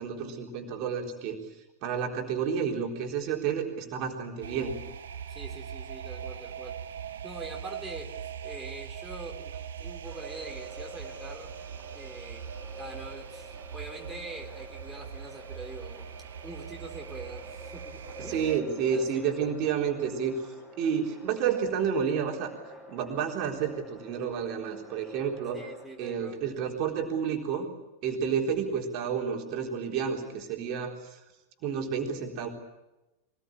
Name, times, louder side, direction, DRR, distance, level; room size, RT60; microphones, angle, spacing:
voice 1, 0.0-1.4 1.8-4.8 18.2-22.5 22.9-25.6 26.0-27.7 28.0-31.2 31.6-32.5, right 7 dB, 40° right, 1 dB, 3.9 m, -30 dB
sound 1, 4.4-18.6, right 8 dB, 65° right, 0.9 m, -41 dB
voice 2, 5.3-6.8 7.2-11.5 11.9-12.5 12.8-16.1 16.4-19.5 25.5-26.4, right 2 dB, 10° right, 0 dB, 4.2 m, -44 dB
sound 2, 10.0-25.9, equal, 20° left, 6.6 m, -48 dB
24.5 x 20.0 x 8.8 m, 1.0 s
figure-of-eight pair, 90°, 0 cm